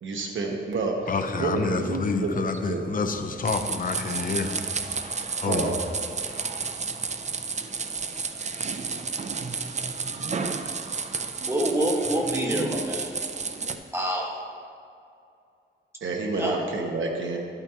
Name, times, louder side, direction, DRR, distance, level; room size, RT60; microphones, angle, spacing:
voice 1, 0.0-1.1 1.4-2.3 2.7-2.9 5.4-5.7 16.0-17.4, right 3 dB, 80° right, 0 dB, 1.0 m, -29 dB
voice 2, 1.1-4.6 4.9-5.7 6.2-6.4, left 4 dB, 45° left, 6 dB, 0.7 m, -28 dB
sound 1, 3.4-13.8, right 5 dB, 35° right, 0.5 m, -31 dB
voice 3, 11.5-13.1 13.9-14.3 16.3-16.5, right 1 dB, 15° right, -2 dB, 1.4 m, -26 dB
12.0 x 9.0 x 2.9 m, 2.5 s
wide cardioid pair, 130°, 20 cm